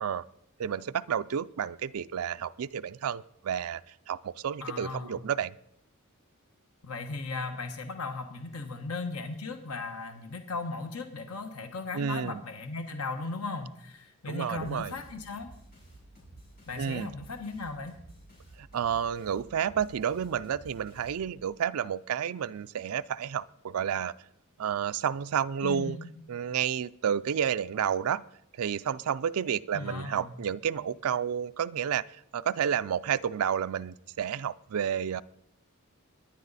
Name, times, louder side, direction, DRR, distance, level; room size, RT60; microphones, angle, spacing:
voice 1, 0.6-3.8 4.1-5.6 11.9-12.4 14.3-14.9 16.8-17.1 18.6-24.1 24.6-26.0 26.3-28.2 28.6-32.0 32.3-35.2, right 8 dB, 80° right, 12 dB, 0.4 m, -30 dB
voice 2, 4.6-5.2 6.8-15.5 16.7-17.9 25.6-26.1 29.7-30.3, left 3 dB, 90° left, 6 dB, 1.2 m, -37 dB
sound 1, 14.4-21.6, right 1 dB, 45° left, 7.5 m, -53 dB
22.0 x 10.0 x 4.1 m, 0.72 s
head